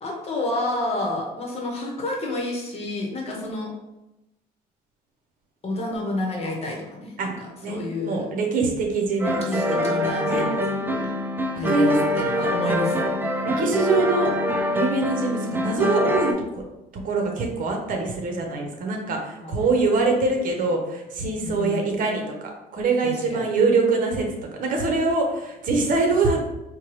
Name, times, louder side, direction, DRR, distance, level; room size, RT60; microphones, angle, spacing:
voice 1, 0.0-3.7 5.6-8.2 9.2-11.1 11.6-13.2 19.4-19.7 21.4-21.9 23.0-23.6, left 2 dB, 35° left, -1 dB, 1.0 m, -30 dB
voice 2, 7.6-9.8 10.3-10.5 11.7-12.0 13.6-14.3 14.7-16.6 17.0-24.3 24.5-26.4, right 3 dB, 55° right, 2 dB, 0.9 m, -24 dB
sound 1, 9.2-16.3, left 1 dB, 10° right, 0.4 m, -24 dB
4.5 x 2.3 x 3.1 m, 0.96 s
cardioid pair, 110°, 17 cm